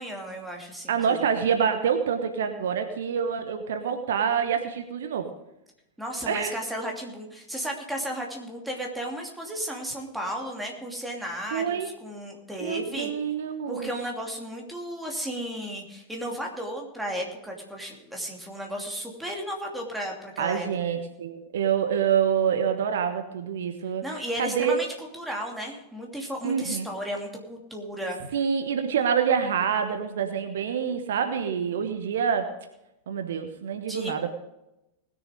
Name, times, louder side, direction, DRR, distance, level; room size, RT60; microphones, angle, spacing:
voice 1, 0.0-1.2 6.0-13.1 13.7-20.7 24.0-28.2 33.9-34.3, equal, 5° right, 0 dB, 2.8 m, -34 dB
voice 2, 0.9-5.3 6.3-6.6 11.5-11.9 12.6-13.9 20.4-24.0 24.4-24.8 26.4-26.9 28.3-32.5 33.1-34.3, right 7 dB, 60° right, 7 dB, 1.1 m, -26 dB
19.5 x 6.9 x 5.1 m, 0.91 s
figure-of-eight pair, 90°, 0 cm